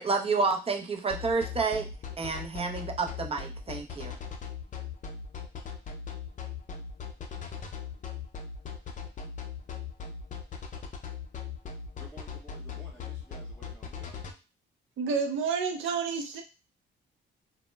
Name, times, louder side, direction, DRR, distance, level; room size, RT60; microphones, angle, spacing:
voice 1, 0.0-1.9 2.2-4.1, right 4 dB, 30° right, 3 dB, 0.5 m, -29 dB
sound 1, 1.1-14.3, left 6 dB, 40° left, 0.5 m, -39 dB
voice 2, 12.0-14.2, equal, 5° left, -6 dB, 0.8 m, -53 dB
voice 3, 15.0-16.4, right 5 dB, 75° right, 4 dB, 0.6 m, -29 dB
2.0 x 2.0 x 3.2 m, 0.30 s
cardioid pair, 90°, 20 cm